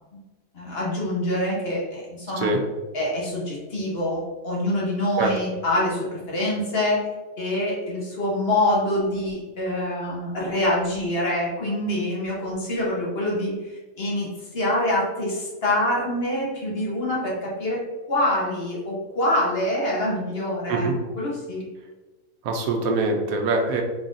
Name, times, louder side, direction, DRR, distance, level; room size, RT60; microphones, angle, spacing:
voice 1, 0.5-2.5 2.9-7.0 7.4-17.8 18.1-20.9 21.2-21.6, left 1 dB, 50° left, -4 dB, 1.1 m, -25 dB
voice 2, 22.4-23.8, right 3 dB, 75° right, 2 dB, 1.1 m, -23 dB
4.0 x 3.8 x 2.4 m, 1.2 s
omnidirectional pair, 1.5 m